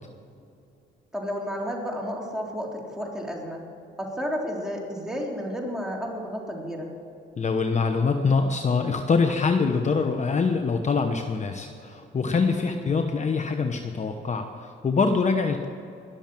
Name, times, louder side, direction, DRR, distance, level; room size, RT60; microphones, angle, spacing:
voice 1, 1.1-3.6 4.0-6.9 12.5-12.9, equal, 5° right, -1 dB, 3.5 m, -32 dB
voice 2, 7.4-15.7, left 4 dB, 35° left, 6 dB, 1.0 m, -24 dB
21.0 x 7.2 x 7.5 m, 2.6 s
cardioid pair, 90°, 20 cm